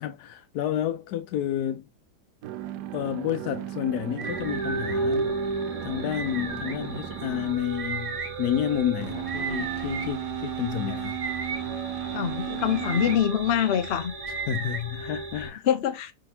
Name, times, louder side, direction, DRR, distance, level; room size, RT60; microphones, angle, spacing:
voice 1, 0.0-1.9 2.9-5.3 5.8-11.2 14.5-15.7, left 11 dB, 75° left, 1.1 m, -30 dB
sound 1, 2.4-13.2, right 12 dB, 85° right, 1.2 m, -35 dB
sound 2, 4.2-5.0 6.1-6.7 7.8-8.3 9.3-10.1 11.0-11.6 12.6-13.2 14.2-14.8, right 5 dB, 45° right, 0.6 m, -34 dB
sound 3, 4.2-15.5, right 2 dB, 60° right, 2.0 m, -35 dB
voice 2, 12.1-14.1 15.7-16.1, left 9 dB, 55° left, 0.7 m, -24 dB
5.0 x 3.2 x 2.8 m
omnidirectional pair, 1.7 m